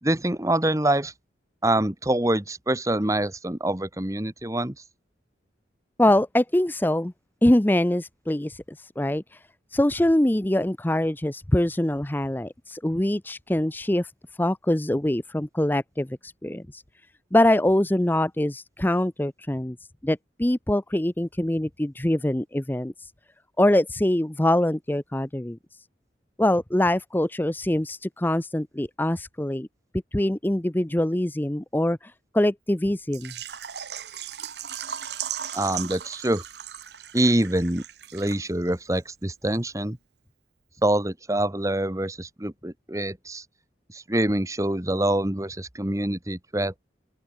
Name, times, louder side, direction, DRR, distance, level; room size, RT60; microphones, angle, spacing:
voice 1, 0.0-1.1 1.6-4.7 35.5-36.4 37.1-37.8 38.1-40.0 40.8-43.4 43.9-46.8, right 1 dB, 20° right, 1.4 m, -25 dB
voice 2, 6.0-7.1 7.4-9.4 9.7-14.1 14.4-16.8 17.3-19.8 20.0-23.1 23.6-25.6 26.4-29.7 30.1-33.3, left 1 dB, 10° left, 0.6 m, -24 dB
Water / Liquid, 33.1-38.7 39.0-39.1 39.5-39.6, right 9 dB, 65° right, 1.1 m, -37 dB
open air
head